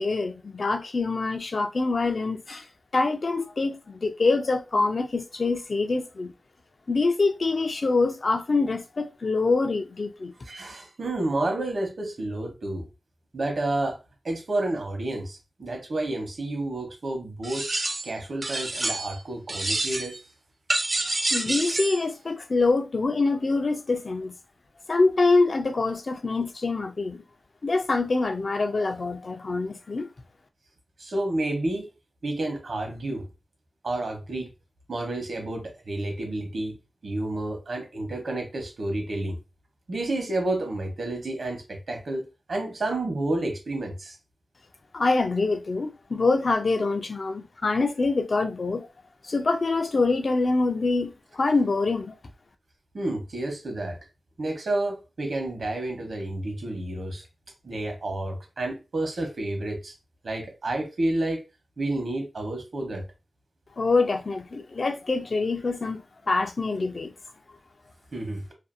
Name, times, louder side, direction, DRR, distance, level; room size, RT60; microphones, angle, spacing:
voice 1, 0.0-2.6 2.9-6.3 6.9-10.3 21.3-24.3 24.9-27.2 27.6-30.1 44.9-48.9 49.3-52.1 63.8-66.0 66.3-67.1, left 3 dB, 50° left, 0.3 m, -25 dB
voice 2, 10.4-12.9 13.3-14.0 14.2-17.7 18.0-20.2 31.0-31.9 32.2-33.3 33.8-34.5 34.9-36.8 37.0-39.4 39.9-44.2 52.9-54.0 54.4-57.2 57.6-59.9 60.2-61.4 61.8-63.0 68.1-68.4, right 2 dB, 65° right, 0.8 m, -30 dB
sound 1, 17.4-18.1 18.4-19.2 19.5-20.2 20.7-22.0, right 2 dB, 35° right, 0.4 m, -28 dB
2.5 x 2.3 x 2.5 m
wide cardioid pair, 120°, 0 cm